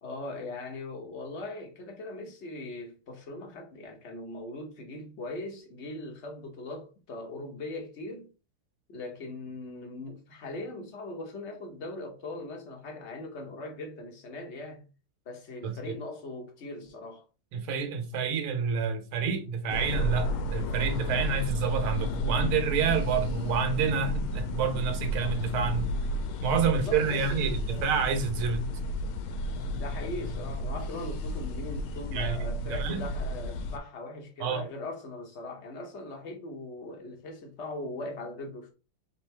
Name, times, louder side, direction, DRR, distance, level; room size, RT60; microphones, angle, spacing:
voice 1, 0.0-8.3 8.9-14.9 15.2-17.2 26.7-27.9 29.7-38.7, left 2 dB, 40° left, 1.1 m, -40 dB
voice 2, 15.6-15.9 17.5-25.9 26.4-28.7 32.1-32.4 32.7-33.0 34.4-34.6, right 6 dB, 75° right, 1.8 m, -28 dB
sound 1, 19.7-33.8, equal, 75° left, 1.5 m, -32 dB
4.1 x 3.8 x 3.3 m
omnidirectional pair, 2.4 m